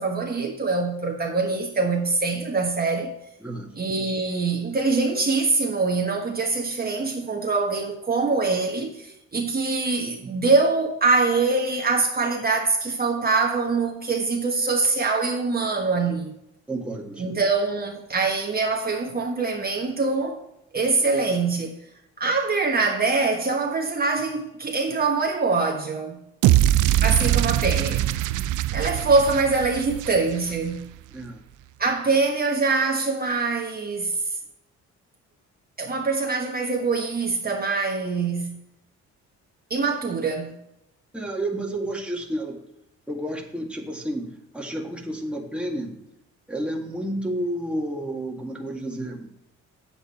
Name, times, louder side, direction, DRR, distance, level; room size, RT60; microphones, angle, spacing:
voice 1, 0.0-3.1 3.8-16.3 17.2-20.4 20.7-21.7 22.2-26.2 27.0-28.1 28.7-30.9 31.8-34.3 35.8-38.6 39.7-40.6, right 3 dB, 30° right, 1.5 m, -24 dB
voice 2, 16.7-17.4 26.4-26.7 31.1-31.4 41.1-42.6 43.1-45.9 46.5-49.3, right 1 dB, 5° right, 1.9 m, -31 dB
sound 1, 26.4-30.7, right 13 dB, 85° right, 0.5 m, -22 dB
8.9 x 8.0 x 4.3 m
cardioid pair, 90°, 30 cm